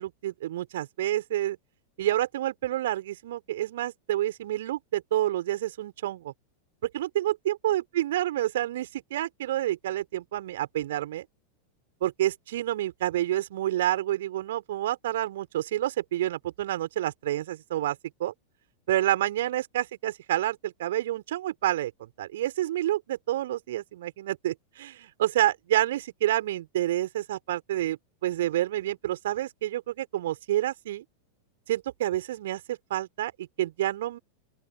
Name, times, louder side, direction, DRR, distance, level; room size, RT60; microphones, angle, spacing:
voice 1, 0.0-1.6 2.0-6.3 6.8-11.2 12.0-18.3 18.9-31.0 31.7-34.2, right 13 dB, 55° right, 5.1 m, -29 dB
open air
figure-of-eight pair, 90°, 0 cm